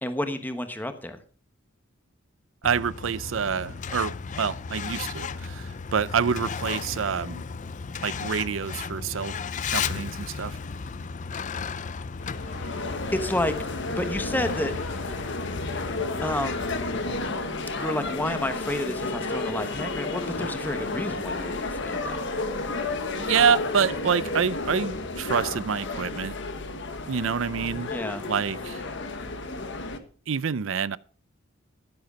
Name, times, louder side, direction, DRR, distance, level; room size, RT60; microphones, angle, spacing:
voice 1, 0.0-1.2 13.1-13.5 13.9-14.7 16.2-16.7 17.7-22.1 27.9-28.2, left 1 dB, 10° left, 1.1 m, -30 dB
Truck, 2.6-17.2, left 5 dB, 40° left, 0.5 m, -35 dB
voice 2, 2.6-7.4 8.0-9.3 9.7-10.6 23.2-26.3 27.1-27.9 28.2-28.8 30.3-31.0, right 6 dB, 70° right, 0.5 m, -27 dB
sound 1, 12.2-30.0, left 3 dB, 65° left, 1.4 m, -32 dB
14.5 x 7.9 x 5.1 m
head